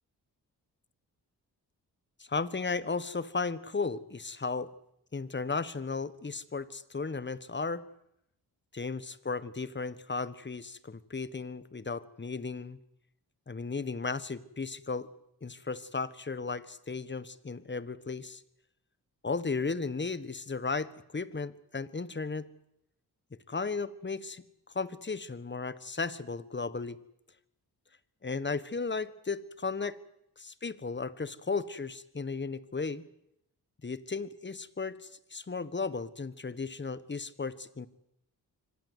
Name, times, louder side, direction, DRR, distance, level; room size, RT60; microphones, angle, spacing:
voice 1, 2.3-4.7 5.1-7.8 8.7-12.8 13.5-15.1 15.4-18.4 19.2-22.5 23.5-24.4 24.7-27.0 28.2-30.0 30.4-33.0 33.8-37.9, left 4 dB, 30° left, 16 dB, 1.4 m, -35 dB
24.5 x 18.5 x 8.2 m, 0.81 s
cardioid pair, 70°, 38 cm